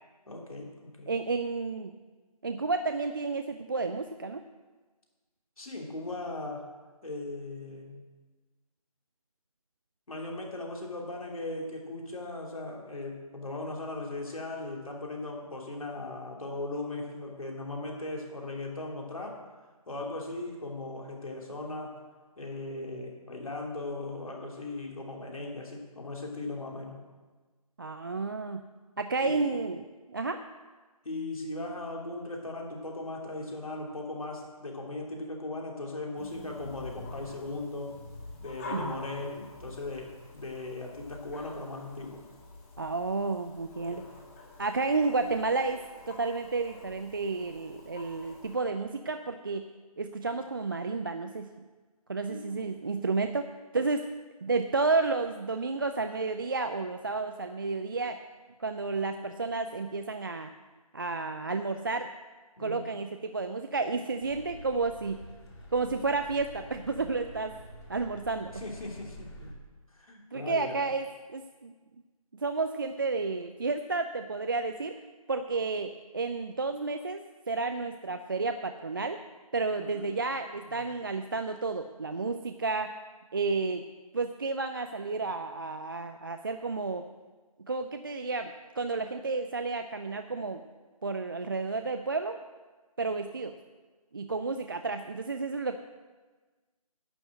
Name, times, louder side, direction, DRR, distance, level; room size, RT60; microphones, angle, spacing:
voice 1, 0.3-1.2 5.6-6.7 7.0-8.0 10.1-19.4 19.9-22.0 22.4-27.0 29.2-29.4 31.0-38.0 38.4-42.2 43.9-44.0 52.3-52.7 62.6-62.8 68.5-69.5 69.9-70.8 79.7-80.1 80.7-80.9, left 2 dB, 65° left, 0 dB, 3.0 m, -38 dB
voice 2, 1.1-2.0 2.4-4.4 27.8-28.7 29.0-30.4 38.7-38.9 42.8-44.0 44.6-49.7 50.0-51.5 52.1-54.1 54.4-58.2 58.6-60.5 60.9-62.1 62.6-65.2 65.7-67.6 67.9-68.5 70.3-71.1 71.3-71.7 72.3-74.9 75.3-79.2 79.5-82.9 83.3-83.8 84.1-87.1 87.7-90.6 91.0-92.4 93.0-93.6 94.1-95.8, right 3 dB, 35° right, 7 dB, 0.4 m, -31 dB
sound 1, 36.2-48.5, left 2 dB, 25° left, 1.8 m, -46 dB
sound 2, 64.2-69.5, left 1 dB, 45° left, 2.3 m, -48 dB
11.0 x 6.1 x 7.7 m, 1.3 s
figure-of-eight pair, 155°, 19 cm